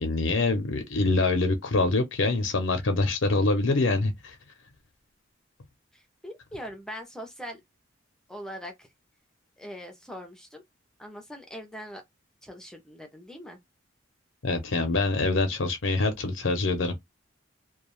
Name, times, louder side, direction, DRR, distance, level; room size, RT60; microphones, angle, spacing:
voice 1, 0.0-4.3 14.4-16.9, left 3 dB, 75° left, 0.7 m, -25 dB
voice 2, 5.9-7.6 8.3-8.9 9.6-10.6 11.0-12.0 12.4-13.6, equal, 5° left, 0.6 m, -41 dB
2.3 x 2.2 x 3.1 m
head